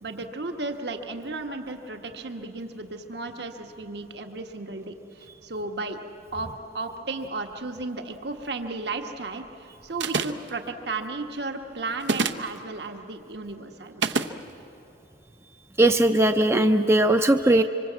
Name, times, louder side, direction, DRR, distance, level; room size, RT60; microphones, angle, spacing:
voice 1, 0.0-6.0 6.3-14.2, right 3 dB, 65° right, 5 dB, 1.4 m, -34 dB
sound 1, 10.0-10.5 12.0-12.5 14.0-14.3, right 4 dB, 80° right, 0.9 m, -25 dB
voice 2, 15.8-17.6, right 1 dB, 15° right, 6 dB, 0.6 m, -19 dB
26.0 x 24.5 x 8.1 m, 2.9 s
head